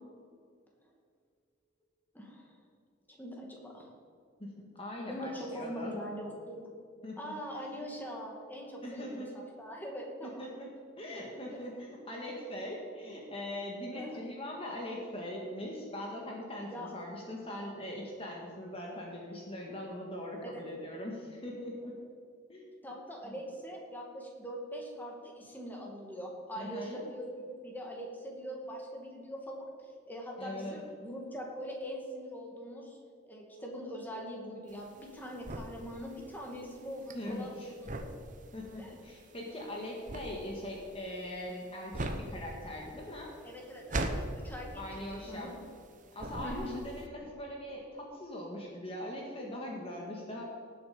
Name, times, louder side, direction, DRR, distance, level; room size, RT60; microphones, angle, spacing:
voice 1, 2.1-2.5 3.1-3.9 5.1-6.7 7.2-10.4 11.5-11.6 13.9-14.3 16.7-16.9 20.4-20.6 22.8-29.7 30.1-33.0 33.3-38.1 38.8-39.0 43.4-44.7 45.0-45.5 46.4-46.7, equal, 10° left, -1 dB, 2.3 m, -42 dB
voice 2, 4.4-6.0 7.0-7.9 8.8-9.3 10.2-10.7 11.0-21.9 22.5-22.8 23.2-23.3 26.5-27.0 30.4-30.8 37.1-37.7 38.5-43.3 44.8-45.5 46.1-50.4, left 1 dB, 30° left, -1 dB, 1.8 m, -41 dB
sound 1, 34.7-45.9 46.2-47.0, right 1 dB, 40° right, 1.0 m, -39 dB
18.5 x 7.7 x 5.2 m, 2.2 s
head